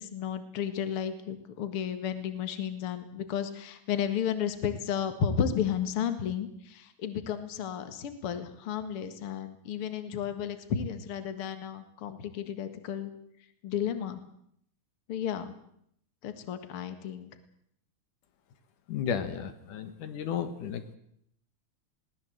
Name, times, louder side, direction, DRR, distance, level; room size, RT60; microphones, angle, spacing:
voice 1, 0.0-13.1 13.6-14.2 15.1-15.5 16.2-17.3, left 8 dB, 50° left, 9 dB, 2.4 m, -33 dB
voice 2, 18.9-21.0, left 8 dB, 85° left, 9 dB, 3.1 m, -33 dB
21.5 x 18.5 x 7.9 m, 0.71 s
omnidirectional pair, 3.5 m